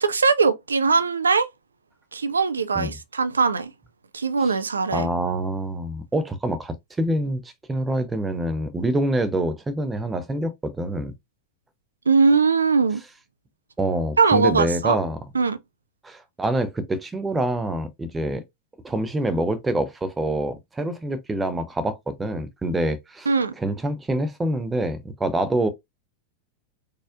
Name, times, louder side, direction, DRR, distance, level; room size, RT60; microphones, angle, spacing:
voice 1, 0.0-1.5 2.1-3.7 4.1-5.1 12.1-13.0 14.2-15.0 15.3-15.6 23.3-23.5, right 4 dB, 75° right, 0.4 m, -20 dB
voice 2, 4.9-11.1 13.8-15.2 16.0-18.4 18.8-23.3 23.6-25.7, right 1 dB, 10° right, 0.6 m, -26 dB
4.1 x 2.5 x 2.4 m
figure-of-eight pair, 90°, 0 cm